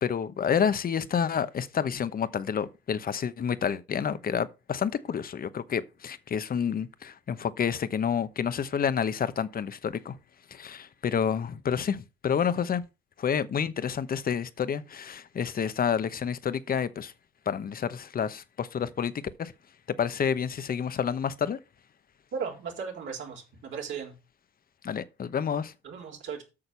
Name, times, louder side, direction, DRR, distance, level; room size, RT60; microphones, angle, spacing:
voice 1, 0.0-10.2 10.5-12.8 13.2-17.1 17.5-19.1 19.4-19.5 20.0-21.6 24.8-25.7, left 7 dB, 45° left, 1.0 m, -29 dB
voice 2, 22.3-24.2 25.8-26.4, right 6 dB, 75° right, 3.9 m, -36 dB
8.7 x 6.5 x 5.7 m
cardioid pair, 90°, 20 cm